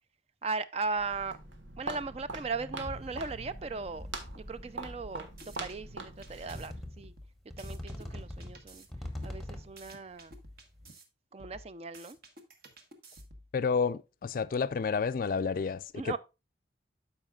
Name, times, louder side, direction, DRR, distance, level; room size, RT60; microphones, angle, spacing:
voice 1, 0.4-1.4 1.8-4.1 4.3-7.1 7.6-8.9 9.2-10.3 11.3-12.2 15.9-16.2, right 4 dB, 30° right, 0.4 m, -37 dB
Walk footsteps, 0.8-7.0, right 2 dB, 85° right, 1.5 m, -43 dB
sound 1, 2.8-3.5 3.8-4.6 5.4-5.5 6.5-7.2 7.5-9.9, left 1 dB, ahead, 1.0 m, -42 dB
sound 2, 4.9-5.8 6.2-8.9 9.2-11.0 11.4-13.5, right 1 dB, 50° right, 1.3 m, -51 dB
voice 2, 13.5-16.2, left 5 dB, 45° left, 0.3 m, -30 dB
12.5 x 5.0 x 2.3 m
head